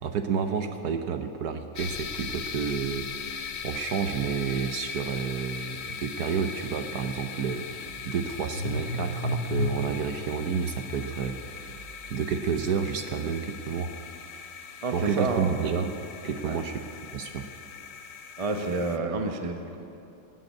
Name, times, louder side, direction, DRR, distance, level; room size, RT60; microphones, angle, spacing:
voice 1, 0.0-11.8 12.1-13.9 14.9-16.8 17.1-17.5, right 6 dB, 65° right, 7 dB, 1.1 m, -30 dB
sound 1, 1.8-19.0, left 6 dB, 80° left, 0.5 m, -40 dB
Car / Engine starting, 6.6-6.7 7.0-12.3, left 1 dB, 85° right, 3.4 m, -35 dB
voice 2, 14.8-15.5 16.5-16.6 18.4-19.6, right 3 dB, 30° right, 5 dB, 0.7 m, -28 dB
18.5 x 7.9 x 8.4 m, 2.8 s
omnidirectional pair, 2.0 m